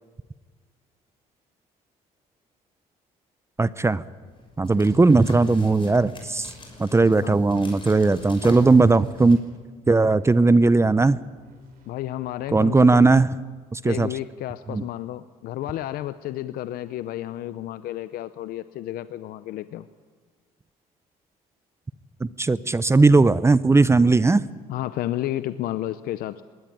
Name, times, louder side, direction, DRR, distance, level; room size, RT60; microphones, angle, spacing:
voice 1, 3.6-4.0 4.6-6.5 6.8-9.4 9.9-11.2 12.5-13.3 13.7-14.1 14.7-14.8 22.2-24.4, right 3 dB, 15° right, 17 dB, 0.7 m, -18 dB
sound 1, 4.3-9.3, left 2 dB, 35° left, 5.8 m, -42 dB
sound 2, 7.6-12.9, left 2 dB, 70° right, 5.0 m, -52 dB
voice 2, 11.9-13.2 13.8-19.9 24.7-26.4, left 13 dB, 70° left, 13 dB, 0.7 m, -31 dB
20.5 x 17.5 x 9.2 m, 1.5 s
supercardioid pair, 80°, 16 cm